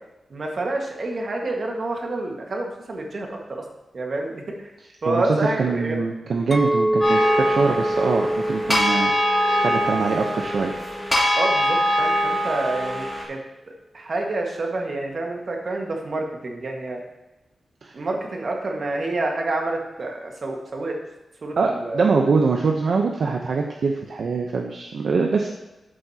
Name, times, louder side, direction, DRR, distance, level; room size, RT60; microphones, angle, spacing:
voice 1, 0.3-3.6 3.9-4.5 5.0-6.0 11.4-13.4 13.9-17.0 17.9-21.0 21.4-22.0, right 2 dB, 45° right, 1 dB, 1.6 m, -28 dB
voice 2, 5.1-10.7 17.8-17.9 21.6-25.5, right 4 dB, 60° right, 2 dB, 0.8 m, -23 dB
Chink clink, 6.5-10.8 11.3-11.7, right 1 dB, 10° right, 0.6 m, -26 dB
sound 1, 7.0-13.2, equal, 15° left, 3.1 m, -23 dB
12.5 x 7.8 x 2.9 m, 1.0 s
wide cardioid pair, 180°, 0 cm